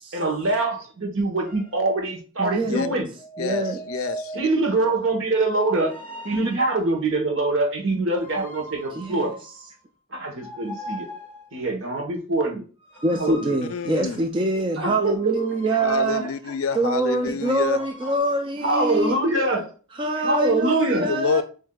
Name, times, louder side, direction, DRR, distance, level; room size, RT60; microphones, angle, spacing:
voice 1, 0.1-3.1 4.3-6.0 6.2-9.3 10.1-11.1 11.5-12.6 13.1-13.6 14.8-15.3 18.0-18.1 18.6-19.7 20.2-21.1, right 2 dB, 65° right, 1.1 m, -24 dB
sound 1, 1.4-1.7 3.2-4.7 5.7-6.9 8.1-9.8 10.4-11.6 12.8-14.4 15.2-16.6 17.5-18.2, right 1 dB, 10° left, 1.8 m, -40 dB
voice 2, 2.4-3.0 3.4-3.8 8.9-9.3 13.0-16.2 16.7-19.2 19.9-21.4, right 2 dB, 25° right, 0.3 m, -24 dB
voice 3, 3.4-4.5 13.7-14.2 15.8-17.8 21.1-21.4, left 6 dB, 75° left, 0.4 m, -27 dB
7.4 x 2.6 x 2.2 m
head